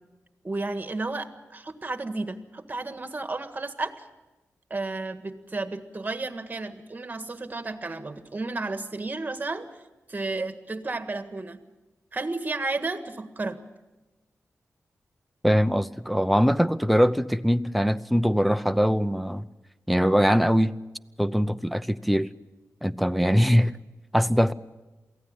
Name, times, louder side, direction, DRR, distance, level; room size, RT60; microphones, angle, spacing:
voice 1, 0.4-3.9 4.7-9.7 10.1-11.6 12.1-13.6, right 3 dB, 30° right, 9 dB, 1.7 m, -32 dB
voice 2, 15.4-19.5 19.9-20.7 21.2-22.3 22.8-23.7 24.1-24.5, equal, ahead, 15 dB, 0.7 m, -22 dB
23.0 x 16.0 x 8.9 m, 1.1 s
wide cardioid pair, 85°, 6 cm